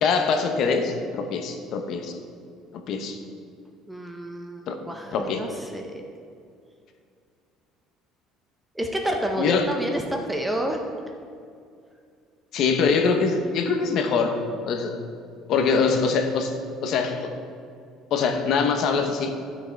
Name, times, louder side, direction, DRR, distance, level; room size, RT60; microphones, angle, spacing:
voice 1, 0.0-2.1 2.7-3.2 4.7-4.8 5.1-5.4 9.4-9.6 12.5-14.4 14.6-15.0 15.5-16.5 16.8-17.3 18.1-19.3, left 5 dB, 45° left, 5 dB, 0.9 m, -23 dB
voice 2, 3.9-6.0 8.7-10.8, right 1 dB, 5° right, 3 dB, 0.6 m, -29 dB
12.0 x 6.4 x 4.5 m, 2.4 s
cardioid pair, 175°, 0 cm